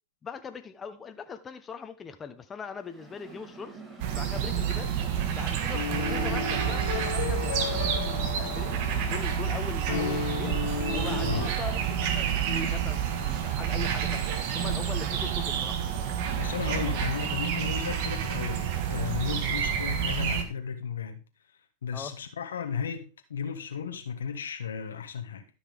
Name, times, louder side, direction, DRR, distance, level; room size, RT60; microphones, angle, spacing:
voice 1, 0.2-3.8 4.1-4.9 5.3-10.6 10.9-15.8 21.9-22.1, left 5 dB, 25° left, 1.1 m, -40 dB
Mechanical fan, 2.8-17.6, right 2 dB, 10° right, 4.7 m, -47 dB
sound 1, 4.0-20.4, right 8 dB, 60° right, 1.6 m, -29 dB
sound 2, 5.7-9.0 9.9-11.5, left 7 dB, 75° left, 1.3 m, -33 dB
voice 2, 16.3-21.2 21.8-25.4, left 7 dB, 90° left, 1.3 m, -34 dB
12.5 x 5.8 x 3.6 m
hypercardioid pair, 105°, 0 cm